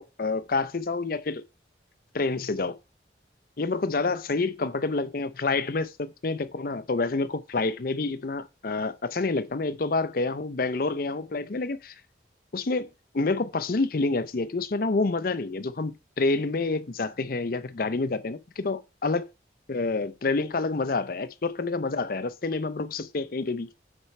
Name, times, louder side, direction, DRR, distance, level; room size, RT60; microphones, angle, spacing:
voice 1, 0.0-1.4 2.1-2.8 3.6-11.9 12.5-19.3 19.7-23.7, left 3 dB, 50° left, 0.6 m, -28 dB
9.0 x 4.4 x 4.2 m
head